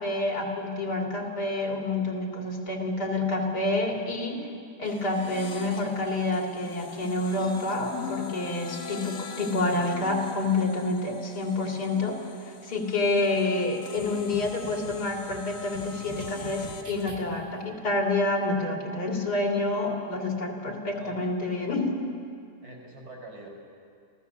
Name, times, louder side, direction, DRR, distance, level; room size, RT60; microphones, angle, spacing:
voice 1, 0.0-4.5 4.8-21.9, left 2 dB, 85° left, 1 dB, 3.2 m, -28 dB
sound 1, 4.8-17.1, left 4 dB, 60° left, 1.5 m, -41 dB
sound 2, 14.0-17.6, equal, 50° right, 2.7 m, -44 dB
voice 2, 22.6-23.5, right 2 dB, 85° right, 1 dB, 6.1 m, -45 dB
28.0 x 15.5 x 7.0 m, 2.3 s
omnidirectional pair, 1.7 m